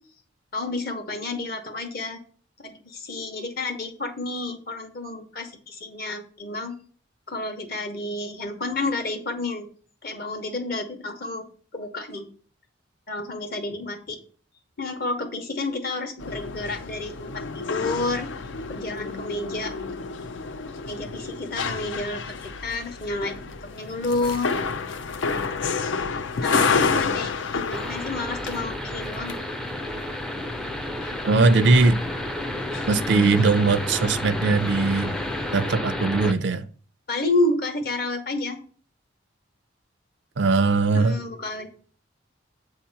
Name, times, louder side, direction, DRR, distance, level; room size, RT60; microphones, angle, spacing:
voice 1, 0.5-2.2 2.6-6.7 7.3-9.7 10.0-11.4 11.7-12.3 13.1-14.2 14.8-18.3 18.7-19.7 20.9-24.5 26.4-29.4 37.1-38.6 40.9-41.7, left 2 dB, 50° left, 1.0 m, -30 dB
sound 1, 16.2-35.8, left 4 dB, 70° left, 0.5 m, -31 dB
sound 2, 27.7-36.3, left 1 dB, ahead, 0.4 m, -31 dB
voice 2, 31.2-32.0 32.9-35.1 35.5-36.6 40.4-41.2, right 3 dB, 65° right, 0.4 m, -20 dB
7.9 x 2.8 x 5.5 m
head